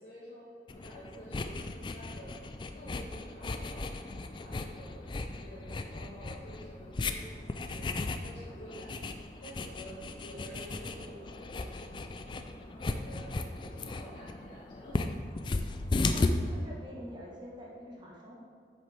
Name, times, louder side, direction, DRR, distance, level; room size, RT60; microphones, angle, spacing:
voice 1, 0.0-2.4 2.7-3.9 4.4-15.0, equal, 75° left, -12 dB, 2.0 m, -50 dB
sound 1, 0.7-16.3, left 3 dB, 25° left, 0.3 m, -36 dB
voice 2, 16.1-18.4, equal, 25° right, -4 dB, 1.3 m, -47 dB
8.1 x 6.8 x 3.4 m, 2.3 s
head